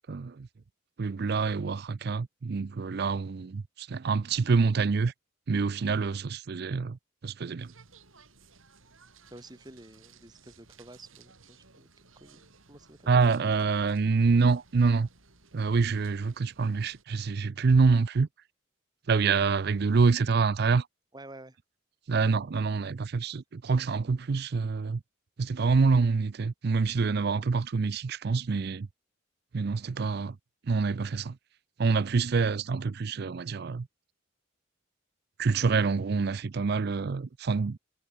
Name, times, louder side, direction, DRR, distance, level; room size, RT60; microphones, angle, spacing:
voice 1, 0.1-0.5 1.0-5.1 5.5-7.7 13.1-15.1 15.5-18.3 19.1-20.9 22.1-25.0 25.4-28.9 29.5-30.4 30.6-31.4 31.8-33.9 35.4-37.8, right 4 dB, 50° right, 0.5 m, -26 dB
sound 1, 7.6-17.0, right 4 dB, 90° right, 6.0 m, -58 dB
voice 2, 9.3-11.9 12.2-13.3 21.1-21.6, right 1 dB, 20° right, 2.4 m, -50 dB
head